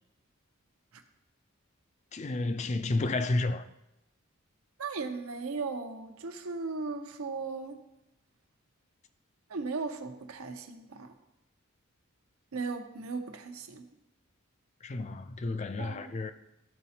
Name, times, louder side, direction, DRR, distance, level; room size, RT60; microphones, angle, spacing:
voice 1, 2.1-3.6 14.8-16.3, left 2 dB, 30° left, 0.3 m, -31 dB
voice 2, 4.8-7.8 9.5-11.1 12.5-13.8 15.8-16.0, right 4 dB, 85° right, 0.7 m, -37 dB
12.5 x 4.2 x 2.8 m
head